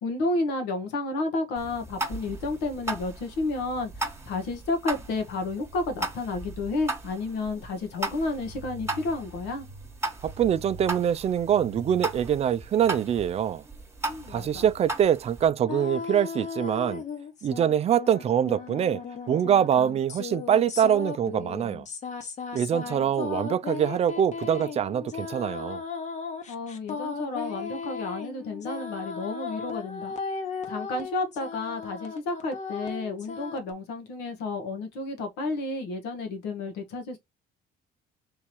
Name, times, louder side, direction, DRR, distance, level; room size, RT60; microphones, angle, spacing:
voice 1, 0.0-3.9 4.2-9.6 14.0-14.6 22.6-23.1 26.5-30.1 30.6-37.2, left 3 dB, 90° left, 1.3 m, -31 dB
sound 1, 1.5-15.5, right 2 dB, 15° right, 1.2 m, -37 dB
voice 2, 10.2-13.6 14.3-17.0 17.4-19.0 19.3-21.8 22.5-25.8, right 9 dB, 40° right, 0.4 m, -24 dB
sound 2, 15.7-17.7 18.0-33.7, left 5 dB, 45° left, 1.0 m, -36 dB
3.5 x 2.9 x 4.6 m
cardioid pair, 110°, 17 cm